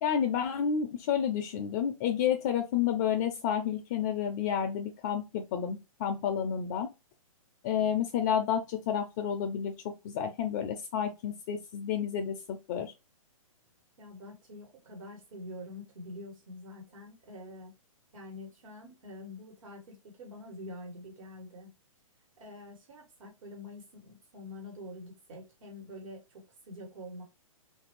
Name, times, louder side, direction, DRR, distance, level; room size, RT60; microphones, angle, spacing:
voice 1, 0.0-6.9 7.6-12.9, left 8 dB, 30° left, 6 dB, 0.4 m, -30 dB
voice 2, 14.0-17.7 18.1-21.7 22.4-27.2, left 1 dB, 70° right, 1 dB, 1.4 m, -46 dB
3.2 x 2.5 x 3.0 m, 0.26 s
hypercardioid pair, 145°, 18 cm